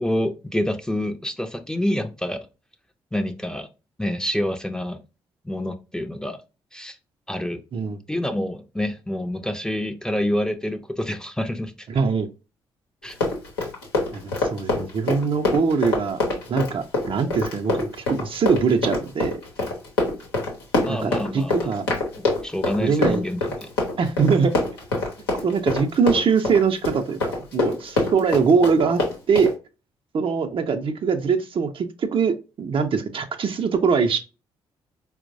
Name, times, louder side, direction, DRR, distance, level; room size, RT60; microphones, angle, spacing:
voice 1, 0.0-2.5 3.1-3.7 4.0-5.0 5.4-6.4 6.7-7.0 7.3-7.6 8.1-11.9 13.0-13.1 14.7-14.9 20.8-21.7 22.2-23.7, left 1 dB, 5° left, 0.5 m, -27 dB
voice 2, 11.9-12.3 14.1-16.2 16.5-19.4 20.9-21.9 22.8-23.2 24.0-24.5 25.4-29.0 29.3-29.5 30.1-34.2, right 5 dB, 45° right, 0.5 m, -22 dB
Run, 13.0-29.5, left 2 dB, 85° left, 0.8 m, -25 dB
4.3 x 2.0 x 2.6 m
hypercardioid pair, 40°, 13 cm